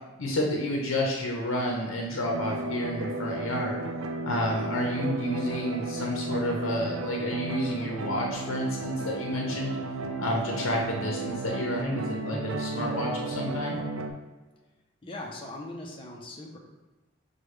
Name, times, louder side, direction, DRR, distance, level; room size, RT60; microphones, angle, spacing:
voice 1, 0.2-3.8 4.2-9.8 10.2-13.8, left 1 dB, 75° left, -1 dB, 0.7 m, -30 dB
sound 1, 2.2-14.1, right 2 dB, 85° right, 0.4 m, -34 dB
voice 2, 15.0-16.6, left 2 dB, 25° left, 0 dB, 0.6 m, -40 dB
6.4 x 2.3 x 3.1 m, 1.2 s
head